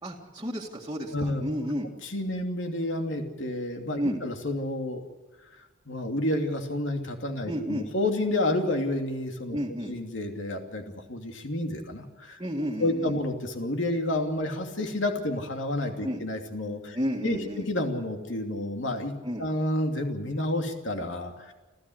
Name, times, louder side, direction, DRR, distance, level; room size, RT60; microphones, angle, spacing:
voice 1, 0.0-1.9 4.0-4.2 7.5-7.9 9.5-9.9 12.4-13.2 16.0-16.2 16.9-17.7 19.2-19.5, equal, 20° right, -3 dB, 2.0 m, -32 dB
voice 2, 1.1-1.4 2.1-5.0 5.9-9.6 9.9-12.4 12.8-17.0 17.2-19.1 19.4-21.5, left 1 dB, 70° left, 4 dB, 2.8 m, -30 dB
28.5 x 13.5 x 7.9 m, 1.2 s
head